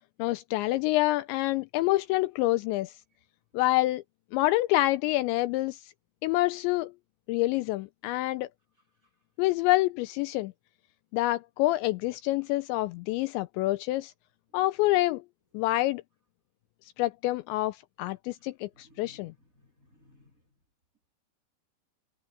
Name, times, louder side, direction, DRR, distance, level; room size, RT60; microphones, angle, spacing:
voice 1, 0.2-2.9 3.5-4.0 4.3-5.8 6.2-6.9 7.3-8.5 9.4-10.5 11.1-14.1 14.5-15.2 15.5-16.0 17.0-19.3, left 18 dB, 80° left, 2.7 m, -27 dB
voice 2, 18.7-20.4, left 1 dB, 20° right, 3.7 m, -61 dB
omnidirectional pair, 5.4 m